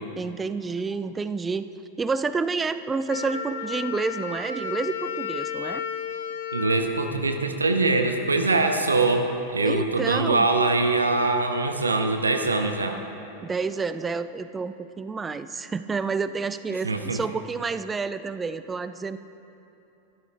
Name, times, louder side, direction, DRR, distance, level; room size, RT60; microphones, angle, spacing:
voice 1, 0.2-1.7 2.0-5.8 9.6-10.5 13.4-19.2, right 4 dB, 15° right, 13 dB, 0.3 m, -29 dB
Wind instrument woodwind instrument, 3.1-7.9, left 6 dB, 60° left, 0.6 m, -33 dB
voice 2, 6.5-13.0 16.8-17.2, right 3 dB, 75° right, 6 dB, 0.6 m, -23 dB
13.5 x 12.0 x 2.5 m, 2.9 s
figure-of-eight pair, 90°, 0 cm